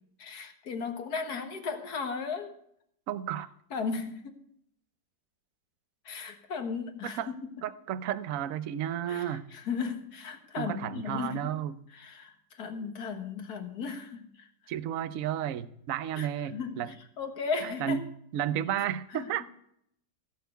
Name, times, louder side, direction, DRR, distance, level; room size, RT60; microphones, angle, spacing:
voice 1, 0.2-2.6 3.7-4.4 6.1-7.4 9.1-11.5 11.9-14.5 16.1-18.0 19.1-19.3, left 5 dB, 55° left, 6 dB, 2.0 m, -36 dB
voice 2, 3.1-3.5 7.2-7.3 7.6-9.5 10.6-11.7 14.7-16.9 17.6-18.0 18.3-19.5, right 10 dB, 55° right, 14 dB, 1.0 m, -32 dB
17.0 x 6.8 x 8.1 m, 0.70 s
omnidirectional pair, 2.0 m